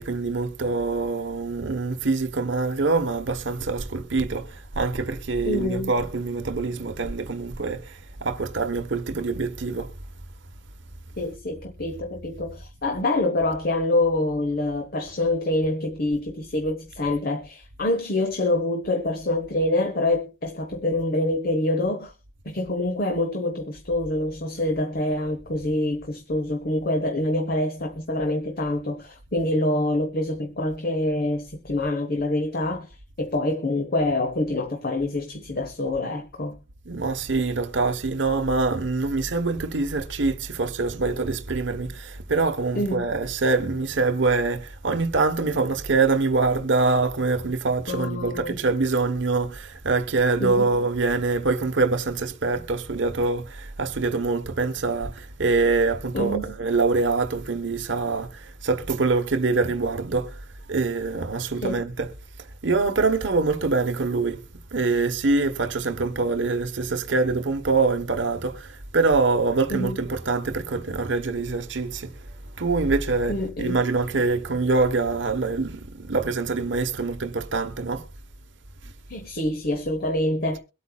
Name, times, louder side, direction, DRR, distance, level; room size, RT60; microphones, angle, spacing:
voice 1, 0.0-9.9 36.9-60.4 60.7-62.1 62.6-64.4 64.7-72.2 72.6-78.1, right 3 dB, 65° right, 1.0 m, -24 dB
voice 2, 5.4-5.9 11.2-22.1 22.4-36.6 42.7-43.1 47.9-48.6 50.4-50.8 56.1-56.6 61.6-61.8 69.7-70.0 73.3-73.8 79.1-80.6, left 1 dB, 50° left, 1.1 m, -26 dB
23.0 x 8.5 x 2.3 m
head